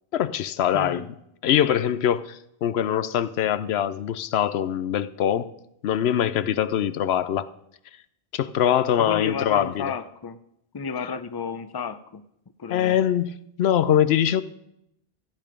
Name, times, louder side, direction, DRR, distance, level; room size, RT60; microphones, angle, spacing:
voice 1, 0.1-1.1 1.4-5.5 5.8-7.5 8.3-9.9 12.7-14.4, left 10 dB, 90° left, 0.9 m, -23 dB
voice 2, 0.7-1.1 9.0-10.4 10.7-12.2 12.6-13.0, left 6 dB, 25° left, 0.6 m, -31 dB
15.0 x 8.9 x 5.1 m
omnidirectional pair, 1.0 m